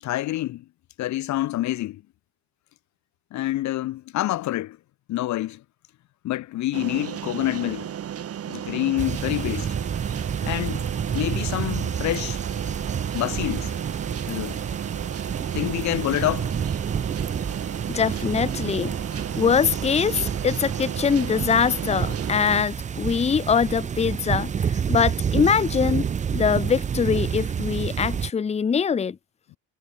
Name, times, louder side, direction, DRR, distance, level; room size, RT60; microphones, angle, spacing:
voice 1, 0.0-0.6 1.0-2.0 3.3-4.8 5.1-5.6 6.2-7.9 8.5-9.8 10.4-10.9 11.1-12.4 13.1-13.7 14.3-14.6 15.5-16.5, left 15 dB, 60° left, 0.7 m, -27 dB
sound 1, 6.7-22.7, right 9 dB, 45° right, 3.4 m, -34 dB
sound 2, 9.0-28.3, right 7 dB, 20° right, 0.5 m, -29 dB
voice 2, 17.9-29.2, left 6 dB, 20° left, 0.7 m, -23 dB
cardioid pair, 145°, 33 cm